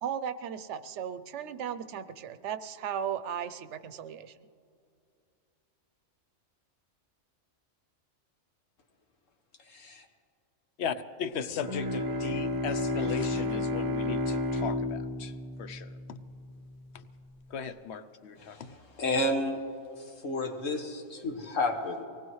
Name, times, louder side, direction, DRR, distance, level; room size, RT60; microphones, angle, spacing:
voice 1, 0.0-4.4, right 8 dB, 70° right, 12 dB, 0.9 m, -36 dB
voice 2, 9.7-10.0 18.4-18.6 19.0-19.6 20.2-22.0, left 2 dB, 90° left, 4 dB, 1.7 m, -31 dB
voice 3, 10.8-15.3 15.6-16.3 16.9-17.1 17.5-18.8, left 7 dB, 65° left, 12 dB, 0.9 m, -37 dB
Bowed string instrument, 11.5-16.9, left 1 dB, 30° right, 0.4 m, -32 dB
24.0 x 18.5 x 3.1 m, 2.5 s
omnidirectional pair, 1.3 m